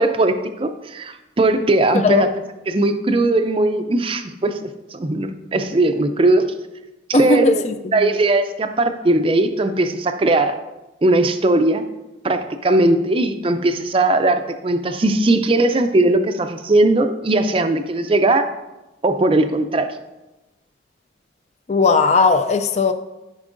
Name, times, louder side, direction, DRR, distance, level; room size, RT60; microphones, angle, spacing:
voice 1, 0.0-2.3 2.7-4.6 4.9-6.5 7.1-7.6 7.9-10.6 11.0-11.8 12.2-18.5 19.0-19.9, right 2 dB, 30° right, 8 dB, 0.4 m, -18 dB
voice 2, 1.9-2.3 7.1-7.7 21.7-22.9, left 3 dB, 35° left, 8 dB, 0.3 m, -17 dB
13.5 x 5.3 x 2.6 m, 1.0 s
head